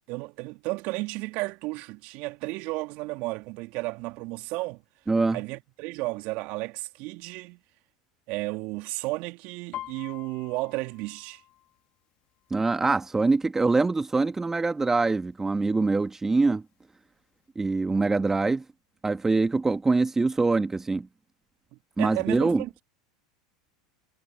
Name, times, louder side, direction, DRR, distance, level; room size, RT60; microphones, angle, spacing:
voice 1, 0.0-4.8 5.3-7.6 8.3-11.4 21.7-22.8, right 23 dB, 55° right, 2.8 m, -33 dB
voice 2, 5.1-5.4 12.5-16.6 17.6-18.6 19.0-21.1 22.0-22.6, right 3 dB, 15° right, 2.0 m, -24 dB
Piano, 9.7-13.4 13.7-14.1 14.5-15.1 15.7-15.8 16.0-17.1 17.4-17.5, left 13 dB, 45° left, 3.0 m, -45 dB
hypercardioid pair, 90°, 3 cm